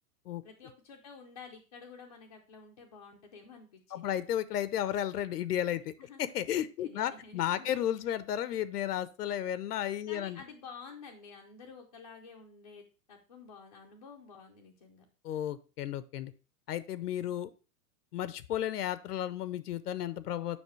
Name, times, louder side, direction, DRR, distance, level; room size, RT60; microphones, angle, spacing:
voice 1, 0.4-4.2 6.0-8.1 10.1-15.0, left 5 dB, 25° left, -1 dB, 0.4 m, -51 dB
voice 2, 3.9-5.9 6.2-10.4 15.2-16.3 16.7-17.5 18.1-20.6, left 11 dB, 75° left, 15 dB, 0.7 m, -33 dB
7.1 x 5.4 x 3.1 m, 0.35 s
hypercardioid pair, 170°, 47 cm